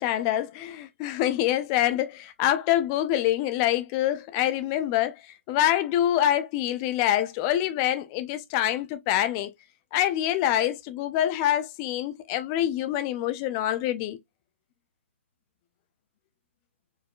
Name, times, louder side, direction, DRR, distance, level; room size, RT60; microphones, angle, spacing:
voice 1, 0.0-5.2 5.5-9.5 9.9-14.2, left 12 dB, 20° left, 0.5 m, -25 dB
4.6 x 3.6 x 2.4 m
hypercardioid pair, 155°, 7 cm